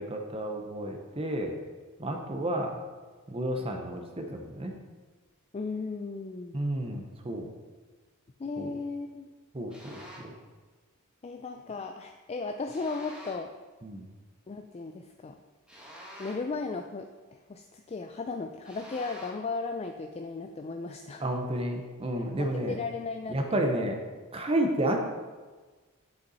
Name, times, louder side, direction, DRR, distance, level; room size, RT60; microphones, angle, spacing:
voice 1, 0.0-1.6 2.0-2.8 3.3-4.7 6.5-7.5 8.6-8.7 9.5-10.3 13.8-14.1 21.2-22.8 23.3-24.0 24.3-25.0, right 1 dB, 25° right, 3 dB, 0.8 m, -31 dB
voice 2, 5.5-6.6 8.4-9.3 11.2-13.5 14.5-15.4 16.2-21.2 22.2-23.4, left 4 dB, 30° left, 5 dB, 0.3 m, -36 dB
sound 1, 9.7-10.4 12.7-13.6 15.7-16.7 18.7-19.5, equal, 5° right, 1.5 m, -48 dB
8.1 x 6.7 x 4.1 m, 1.3 s
head